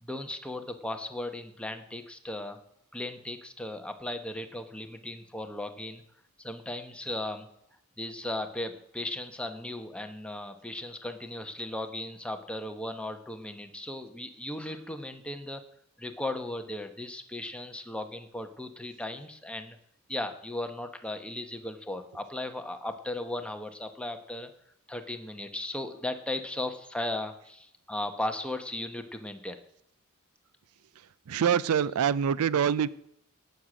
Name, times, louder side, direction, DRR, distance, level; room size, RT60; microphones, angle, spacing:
voice 1, 0.0-2.6 2.9-6.0 6.4-7.5 8.0-15.6 16.0-19.8 20.1-24.5 24.9-29.6, left 1 dB, 5° left, 6 dB, 1.0 m, -36 dB
voice 2, 31.3-32.9, right 8 dB, 75° right, 19 dB, 0.4 m, -25 dB
17.5 x 6.6 x 6.2 m, 0.75 s
head